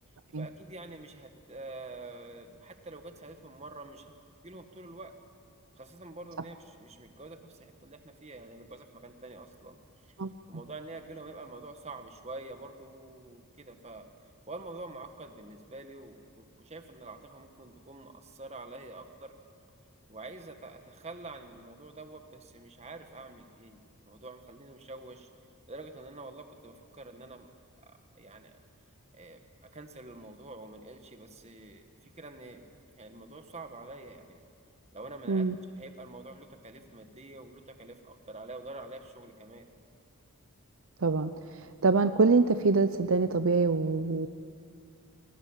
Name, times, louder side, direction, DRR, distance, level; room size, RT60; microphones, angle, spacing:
voice 1, 0.3-4.1 4.4-5.1 5.8-10.1 10.5-14.1 14.5-19.3 20.1-25.3 25.7-27.5 28.1-28.6 29.1-29.4 29.7-32.6 33.0-34.4 34.9-35.5 35.8-39.6, right 2 dB, 30° right, 6 dB, 1.7 m, -46 dB
voice 2, 41.0-44.3, right 4 dB, 65° right, 10 dB, 0.7 m, -25 dB
29.5 x 21.5 x 7.5 m, 2.3 s
head